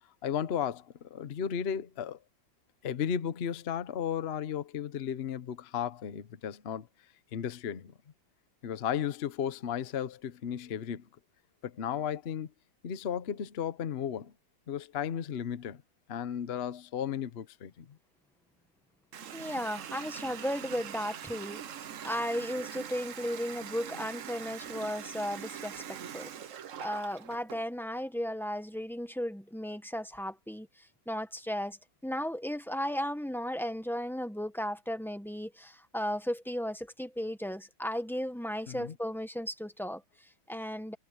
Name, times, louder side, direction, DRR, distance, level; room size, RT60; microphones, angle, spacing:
voice 1, 0.2-2.2 2.8-6.9 7.3-7.9 8.6-11.1 11.6-12.5 12.8-14.3 14.7-15.8 16.1-18.0 38.7-38.9, left 8 dB, 60° left, 0.6 m, -34 dB
Water tap faucet, 19.1-27.6, right 9 dB, 60° right, 0.8 m, -43 dB
voice 2, 19.3-21.6 22.0-26.3 26.8-31.8 32.0-40.9, equal, 5° left, 0.4 m, -35 dB
omnidirectional pair, 2.4 m